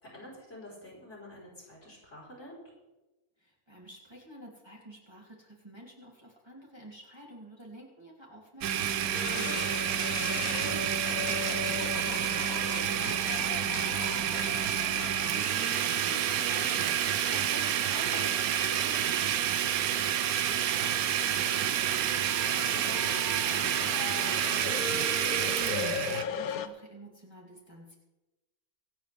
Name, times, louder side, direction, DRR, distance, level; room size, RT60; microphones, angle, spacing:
voice 1, 0.0-2.6 10.4-10.8 16.2-24.0, left 1 dB, 55° left, -5 dB, 5.0 m, -47 dB
voice 2, 3.4-15.8 24.4-27.9, right 1 dB, 15° right, -3 dB, 2.7 m, -51 dB
Domestic sounds home sounds, 8.6-26.2, right 10 dB, 80° right, 1.1 m, -29 dB
sound 1, 9.1-26.7, left 8 dB, 80° left, 1.2 m, -39 dB
25.0 x 8.9 x 3.5 m, 1.1 s
omnidirectional pair, 1.5 m